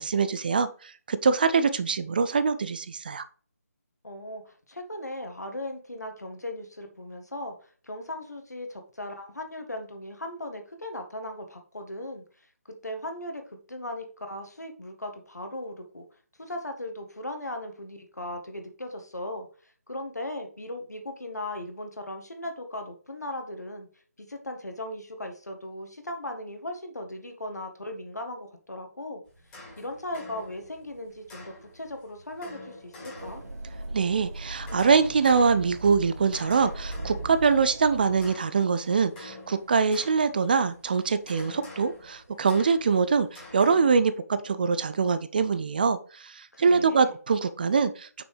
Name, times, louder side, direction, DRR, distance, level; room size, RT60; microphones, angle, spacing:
voice 1, 0.0-3.2 33.9-48.2, right 5 dB, 35° right, 13 dB, 0.4 m, -24 dB
voice 2, 4.0-12.5 12.8-16.0 16.4-23.9 24.2-29.2 29.8-33.4 46.5-47.1, left 1 dB, 80° left, 5 dB, 1.7 m, -38 dB
sound 1, 29.3-43.8, left 2 dB, 10° left, 2.4 m, -48 dB
sound 2, 33.2-38.3, right 1 dB, 80° right, 2.7 m, -38 dB
6.1 x 6.0 x 3.3 m, 0.42 s
figure-of-eight pair, 155°, 9 cm